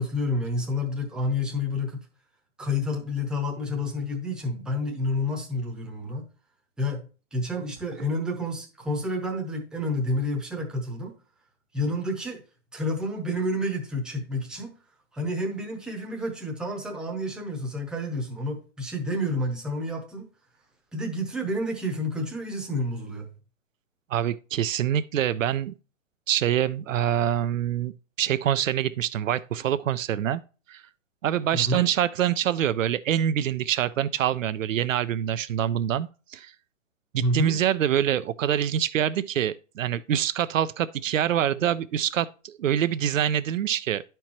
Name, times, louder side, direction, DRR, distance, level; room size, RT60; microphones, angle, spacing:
voice 1, 0.0-2.0 2.6-6.2 6.8-11.1 11.7-12.4 12.7-14.8 15.1-20.3 20.9-23.3 31.5-31.9 37.2-37.6, left 1 dB, ahead, 0.8 m, -29 dB
voice 2, 24.1-25.7 26.3-27.9 28.2-30.4 30.7-30.8 31.2-36.5 37.1-44.0, right 10 dB, 85° right, 0.5 m, -25 dB
11.0 x 4.5 x 2.9 m
hypercardioid pair, 135°, 38 cm